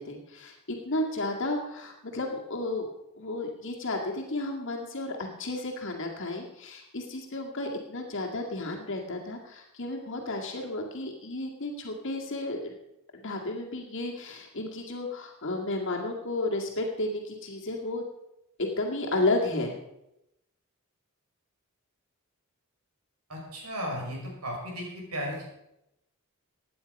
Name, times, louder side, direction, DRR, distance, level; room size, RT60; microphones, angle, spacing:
voice 1, 0.0-2.9 3.2-12.7 13.1-18.0 18.6-19.7, left 2 dB, 60° left, 0 dB, 2.1 m, -32 dB
voice 2, 23.3-25.5, equal, 85° right, -1 dB, 5.8 m, -35 dB
16.5 x 9.7 x 5.3 m, 0.87 s
head